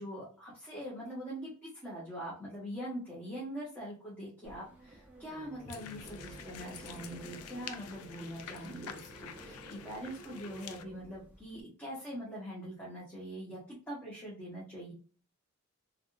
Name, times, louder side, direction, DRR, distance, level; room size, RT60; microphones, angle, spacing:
voice 1, 0.0-14.9, equal, 10° left, -8 dB, 1.0 m, -43 dB
sound 1, 4.4-11.6, right 1 dB, 10° right, 0.6 m, -52 dB
sound 2, 5.7-10.8, left 8 dB, 80° left, 0.4 m, -48 dB
3.5 x 2.4 x 2.5 m, 0.39 s
head